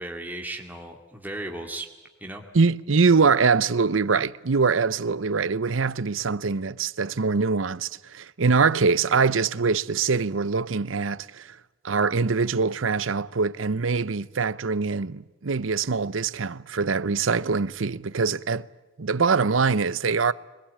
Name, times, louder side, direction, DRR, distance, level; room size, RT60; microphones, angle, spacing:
voice 1, 0.0-1.9 2.2-2.4, right 1 dB, 10° right, 2.3 m, -35 dB
voice 2, 2.5-11.6 11.8-18.7 19.0-20.3, right 4 dB, 90° right, 0.8 m, -23 dB
25.0 x 21.5 x 8.7 m
head